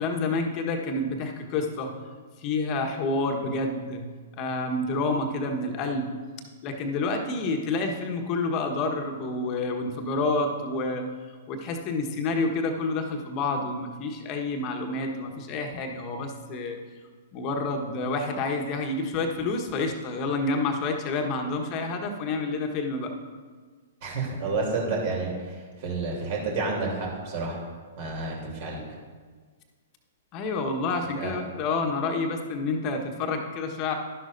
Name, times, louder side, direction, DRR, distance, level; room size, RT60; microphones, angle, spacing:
voice 1, 0.0-1.9 2.4-4.0 4.4-6.1 6.6-11.0 11.5-16.8 17.3-23.1 30.3-33.9, left 3 dB, 35° left, 3 dB, 1.3 m, -28 dB
voice 2, 24.0-25.5 25.8-27.6 28.0-28.8 31.1-31.3, right 3 dB, 45° right, -2 dB, 3.1 m, -30 dB
12.0 x 11.5 x 2.7 m, 1.5 s
figure-of-eight pair, 110°, 0 cm